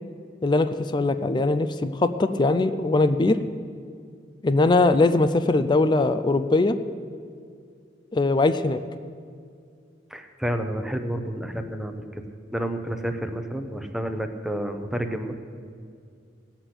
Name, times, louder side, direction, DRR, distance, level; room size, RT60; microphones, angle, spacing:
voice 1, 0.4-3.4 4.4-6.8 8.1-8.8, left 2 dB, 25° left, 10 dB, 0.4 m, -21 dB
voice 2, 10.1-12.2 12.5-15.3, equal, ahead, 6 dB, 0.8 m, -30 dB
17.5 x 6.0 x 8.1 m, 2.3 s
head